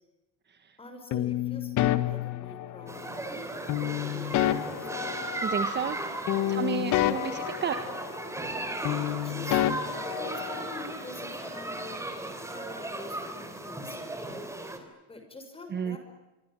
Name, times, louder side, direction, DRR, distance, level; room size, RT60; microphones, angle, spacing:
voice 1, 0.8-3.2 4.0-4.9 6.4-6.7 8.7-9.6 10.2-16.0, left 2 dB, 15° left, 6 dB, 6.4 m, -46 dB
sound 1, 1.1-3.1 3.7-6.0 6.3-8.6 8.8-10.9, left 13 dB, 45° left, 1.6 m, -29 dB
sound 2, 2.9-14.8, right 2 dB, 5° right, 3.6 m, -36 dB
voice 2, 5.4-6.0 6.5-7.8 15.7-16.0, right 7 dB, 25° right, 9 dB, 1.5 m, -31 dB
26.0 x 24.0 x 9.1 m, 1.0 s
cardioid pair, 170°, 40 cm